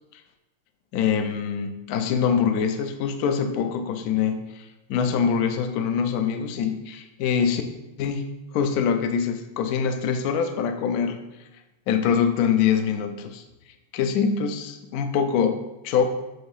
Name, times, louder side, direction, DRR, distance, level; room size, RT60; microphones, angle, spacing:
voice 1, 0.9-7.6 8.0-8.3 8.5-11.2 11.9-13.4 13.9-16.1, left 7 dB, 85° left, 6 dB, 0.8 m, -24 dB
7.9 x 2.7 x 4.8 m, 1.0 s
omnidirectional pair, 2.3 m